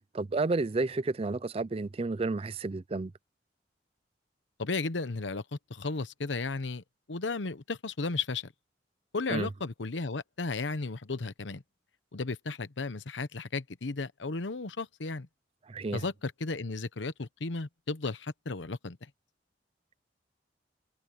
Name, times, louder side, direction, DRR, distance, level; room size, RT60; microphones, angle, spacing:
voice 1, 0.1-3.1 9.3-9.5 15.7-16.0, right 3 dB, 35° right, 0.4 m, -31 dB
voice 2, 4.6-8.5 9.1-11.6 12.1-15.3 15.9-19.0, left 3 dB, 90° left, 1.0 m, -34 dB
open air
head